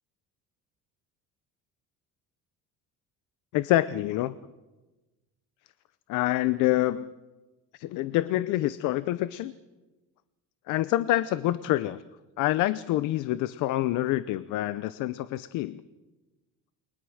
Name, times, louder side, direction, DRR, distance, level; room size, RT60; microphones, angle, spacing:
voice 1, 3.5-4.3 6.1-7.1 7.7-9.5 10.7-12.0 12.4-15.8, left 15 dB, 75° left, 15 dB, 0.8 m, -26 dB
29.0 x 23.0 x 6.4 m, 1.2 s
cardioid pair, 165°, 31 cm